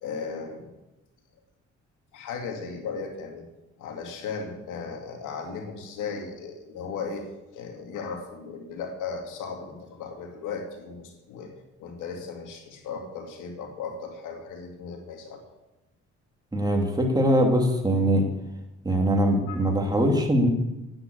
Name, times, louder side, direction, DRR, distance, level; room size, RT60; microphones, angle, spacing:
voice 1, 0.0-0.7 2.1-3.4 3.8-7.2 7.5-11.5 11.8-15.4 19.5-19.7, left 5 dB, 90° left, 3 dB, 2.5 m, -36 dB
voice 2, 16.5-18.2 18.8-20.5, right 1 dB, 15° right, 2 dB, 3.0 m, -22 dB
9.9 x 9.4 x 8.4 m, 0.99 s
cardioid pair, 90°, 30 cm